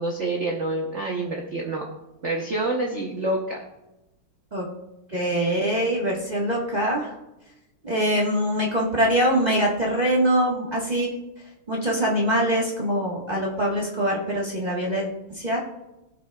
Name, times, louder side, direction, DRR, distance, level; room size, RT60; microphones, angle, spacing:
voice 1, 0.0-1.9 2.2-3.6, right 2 dB, 50° right, 0 dB, 0.9 m, -27 dB
voice 2, 5.1-7.1 7.8-11.1 11.7-15.6, equal, 25° right, -4 dB, 1.3 m, -23 dB
17.0 x 5.9 x 2.3 m, 0.95 s
omnidirectional pair, 2.4 m